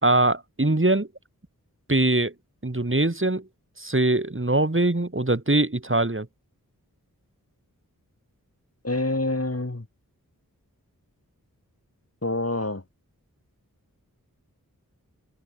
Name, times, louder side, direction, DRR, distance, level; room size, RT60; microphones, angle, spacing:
voice 1, 0.0-1.1 1.9-2.3 2.6-3.5 3.8-6.3, right 2 dB, 35° right, 3.6 m, -22 dB
voice 2, 8.8-9.9 12.2-12.8, left 2 dB, 40° left, 3.6 m, -26 dB
open air
wide cardioid pair, 40°, 35 cm